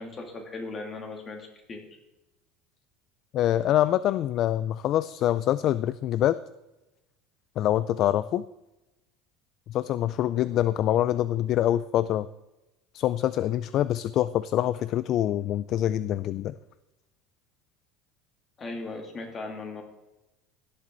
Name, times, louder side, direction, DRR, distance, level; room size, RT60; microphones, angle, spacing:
voice 1, 0.0-1.8 18.6-19.8, left 3 dB, 25° left, 2 dB, 2.5 m, -38 dB
voice 2, 3.3-6.4 7.6-8.4 9.7-12.3 12.9-16.5, left 12 dB, 45° left, 16 dB, 0.3 m, -25 dB
17.0 x 7.6 x 4.0 m, 0.98 s
cardioid pair, 140°, 0 cm